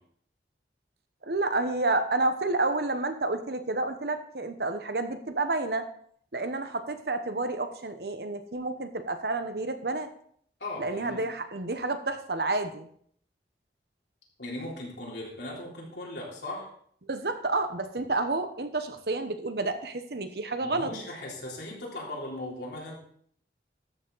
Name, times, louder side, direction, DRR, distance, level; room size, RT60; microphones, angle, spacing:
voice 1, 1.2-5.9 6.3-10.1 10.8-12.9 17.1-20.9, right 2 dB, 65° right, 9 dB, 1.0 m, -30 dB
voice 2, 10.6-11.2 14.4-16.7 20.6-23.0, left 1 dB, 80° left, -3 dB, 3.7 m, -38 dB
13.0 x 7.0 x 4.0 m, 0.63 s
head